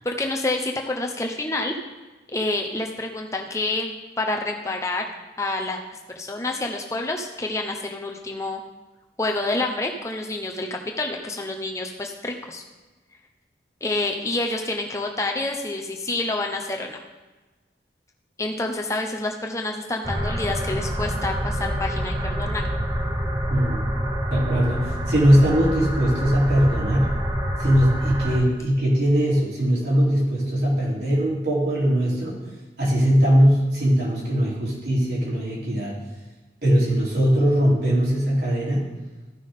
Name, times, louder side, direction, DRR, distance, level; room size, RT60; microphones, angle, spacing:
voice 1, 0.0-1.8 2.3-5.1 5.4-5.8 6.1-8.6 9.2-12.6 13.8-17.0 18.4-22.6, left 2 dB, 15° left, 2 dB, 0.8 m, -28 dB
sound 1, 20.0-28.4, equal, 20° right, 0.8 m, -26 dB
voice 2, 23.5-23.9 24.3-27.1 27.6-32.4 32.8-35.9 36.6-38.9, equal, 75° right, -7 dB, 3.6 m, -20 dB
13.5 x 6.0 x 3.7 m, 1.2 s
head